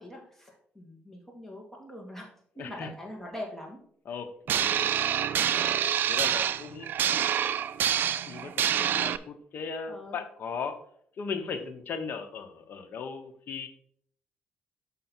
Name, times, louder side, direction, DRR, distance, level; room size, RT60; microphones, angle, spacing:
voice 1, 0.0-2.3 2.6-3.8 9.9-10.2, left 1 dB, 10° left, 0 dB, 2.3 m, -42 dB
voice 2, 2.6-2.9 4.0-4.9 6.0-6.9 8.3-10.8 11.2-13.7, left 5 dB, 60° left, 7 dB, 1.0 m, -37 dB
sound 1, 4.5-9.2, right 9 dB, 65° right, 0.4 m, -27 dB
6.6 x 5.5 x 4.4 m, 0.63 s
cardioid pair, 90°, 4 cm